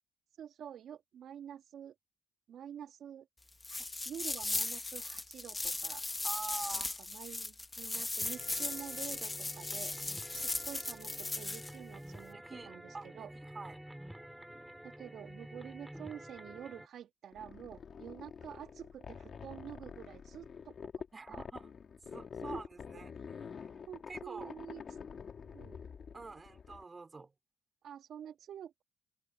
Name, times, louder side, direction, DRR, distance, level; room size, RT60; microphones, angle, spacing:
voice 1, 0.4-1.9 2.5-3.3 3.7-6.0 6.7-9.9 10.3-12.4 12.7-13.3 14.8-20.9 21.3-21.4 22.4-22.7 22.9-23.0 23.9-24.8 25.4-25.8 27.8-28.8, right 9 dB, 70° right, 2.7 m, -48 dB
sound 1, 3.6-11.7, left 2 dB, 20° left, 1.7 m, -37 dB
voice 2, 6.2-6.9 7.9-8.0 12.3-13.8 21.1-21.7 22.1-23.7 24.1-24.5 26.1-27.3, right 3 dB, 30° right, 4.5 m, -47 dB
sound 2, 8.2-16.9, right 1 dB, 5° right, 6.0 m, -50 dB
sound 3, 17.3-26.8, left 6 dB, 50° left, 2.6 m, -47 dB
cardioid pair, 90°, 0 cm